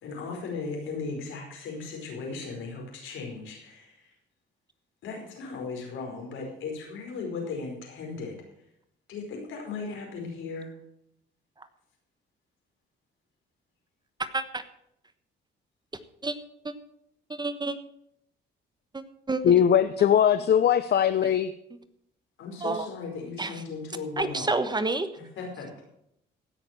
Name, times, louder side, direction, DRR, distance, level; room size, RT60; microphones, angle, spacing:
voice 1, 0.0-4.1 5.0-8.4 9.1-10.7 22.4-24.5 25.2-25.8, left 4 dB, 80° left, 1 dB, 4.8 m, -37 dB
voice 2, 17.4-17.7 19.3-19.4 22.6-22.9 23.4-23.5 24.2-25.1, right 3 dB, 20° right, 11 dB, 1.2 m, -28 dB
voice 3, 19.4-21.5, left 9 dB, 55° left, 12 dB, 0.7 m, -20 dB
16.0 x 6.7 x 7.5 m, 0.77 s
cardioid pair, 90°, 20 cm